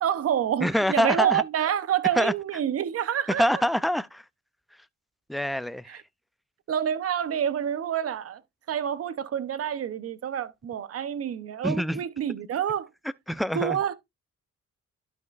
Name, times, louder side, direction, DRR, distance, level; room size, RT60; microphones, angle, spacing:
voice 1, 0.0-3.6 5.9-6.0 6.7-8.4 8.7-12.9 13.5-13.9, right 9 dB, 50° right, 0.9 m, -28 dB
voice 2, 0.6-1.4 2.2-2.3 3.4-4.2 5.3-6.0 11.6-12.0 13.3-13.8, equal, ahead, 0.4 m, -25 dB
12.0 x 5.3 x 2.5 m
cardioid pair, 90°, 30 cm